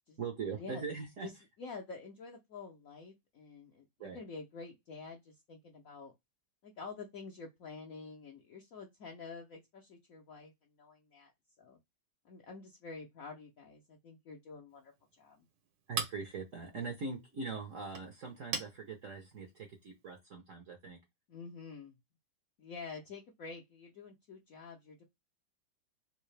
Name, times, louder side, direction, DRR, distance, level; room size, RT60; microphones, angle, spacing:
voice 1, 0.2-1.3 4.0-4.2 15.9-21.0, right 4 dB, 60° right, 0.8 m, -41 dB
voice 2, 1.6-6.1 6.6-10.5 10.8-11.3 11.6-11.8 12.2-14.9 15.2-15.5 21.3-22.0 22.6-25.0, left 4 dB, 70° left, 0.8 m, -48 dB
Chink clink, 14.7-20.2, right 5 dB, 80° right, 1.8 m, -45 dB
3.7 x 2.7 x 3.2 m
omnidirectional pair, 2.2 m